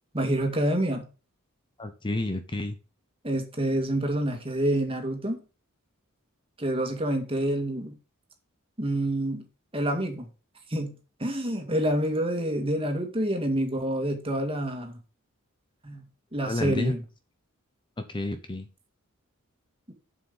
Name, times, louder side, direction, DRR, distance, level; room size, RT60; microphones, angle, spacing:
voice 1, 0.1-1.1 3.2-5.4 6.6-7.9 8.8-9.5 9.7-10.3 10.7-15.0 15.8-16.0 16.3-17.0, right 1 dB, 25° right, 2.1 m, -27 dB
voice 2, 1.8-2.8 16.4-16.9 18.1-18.7, left 2 dB, 25° left, 0.8 m, -30 dB
7.5 x 7.0 x 5.5 m
head